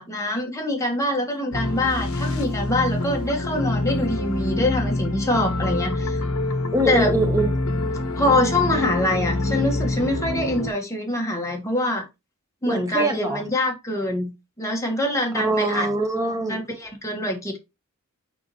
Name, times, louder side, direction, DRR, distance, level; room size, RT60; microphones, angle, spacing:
voice 1, 0.0-6.2 6.9-7.1 8.2-12.0 12.6-14.3 14.6-15.9 16.5-17.6, left 1 dB, 15° left, 1.6 m, -24 dB
sound 1, 1.5-10.7, left 2 dB, 75° left, 0.9 m, -26 dB
voice 2, 6.7-7.5 12.6-13.4 15.3-16.6, right 1 dB, 15° right, 1.1 m, -23 dB
6.1 x 5.6 x 3.1 m
head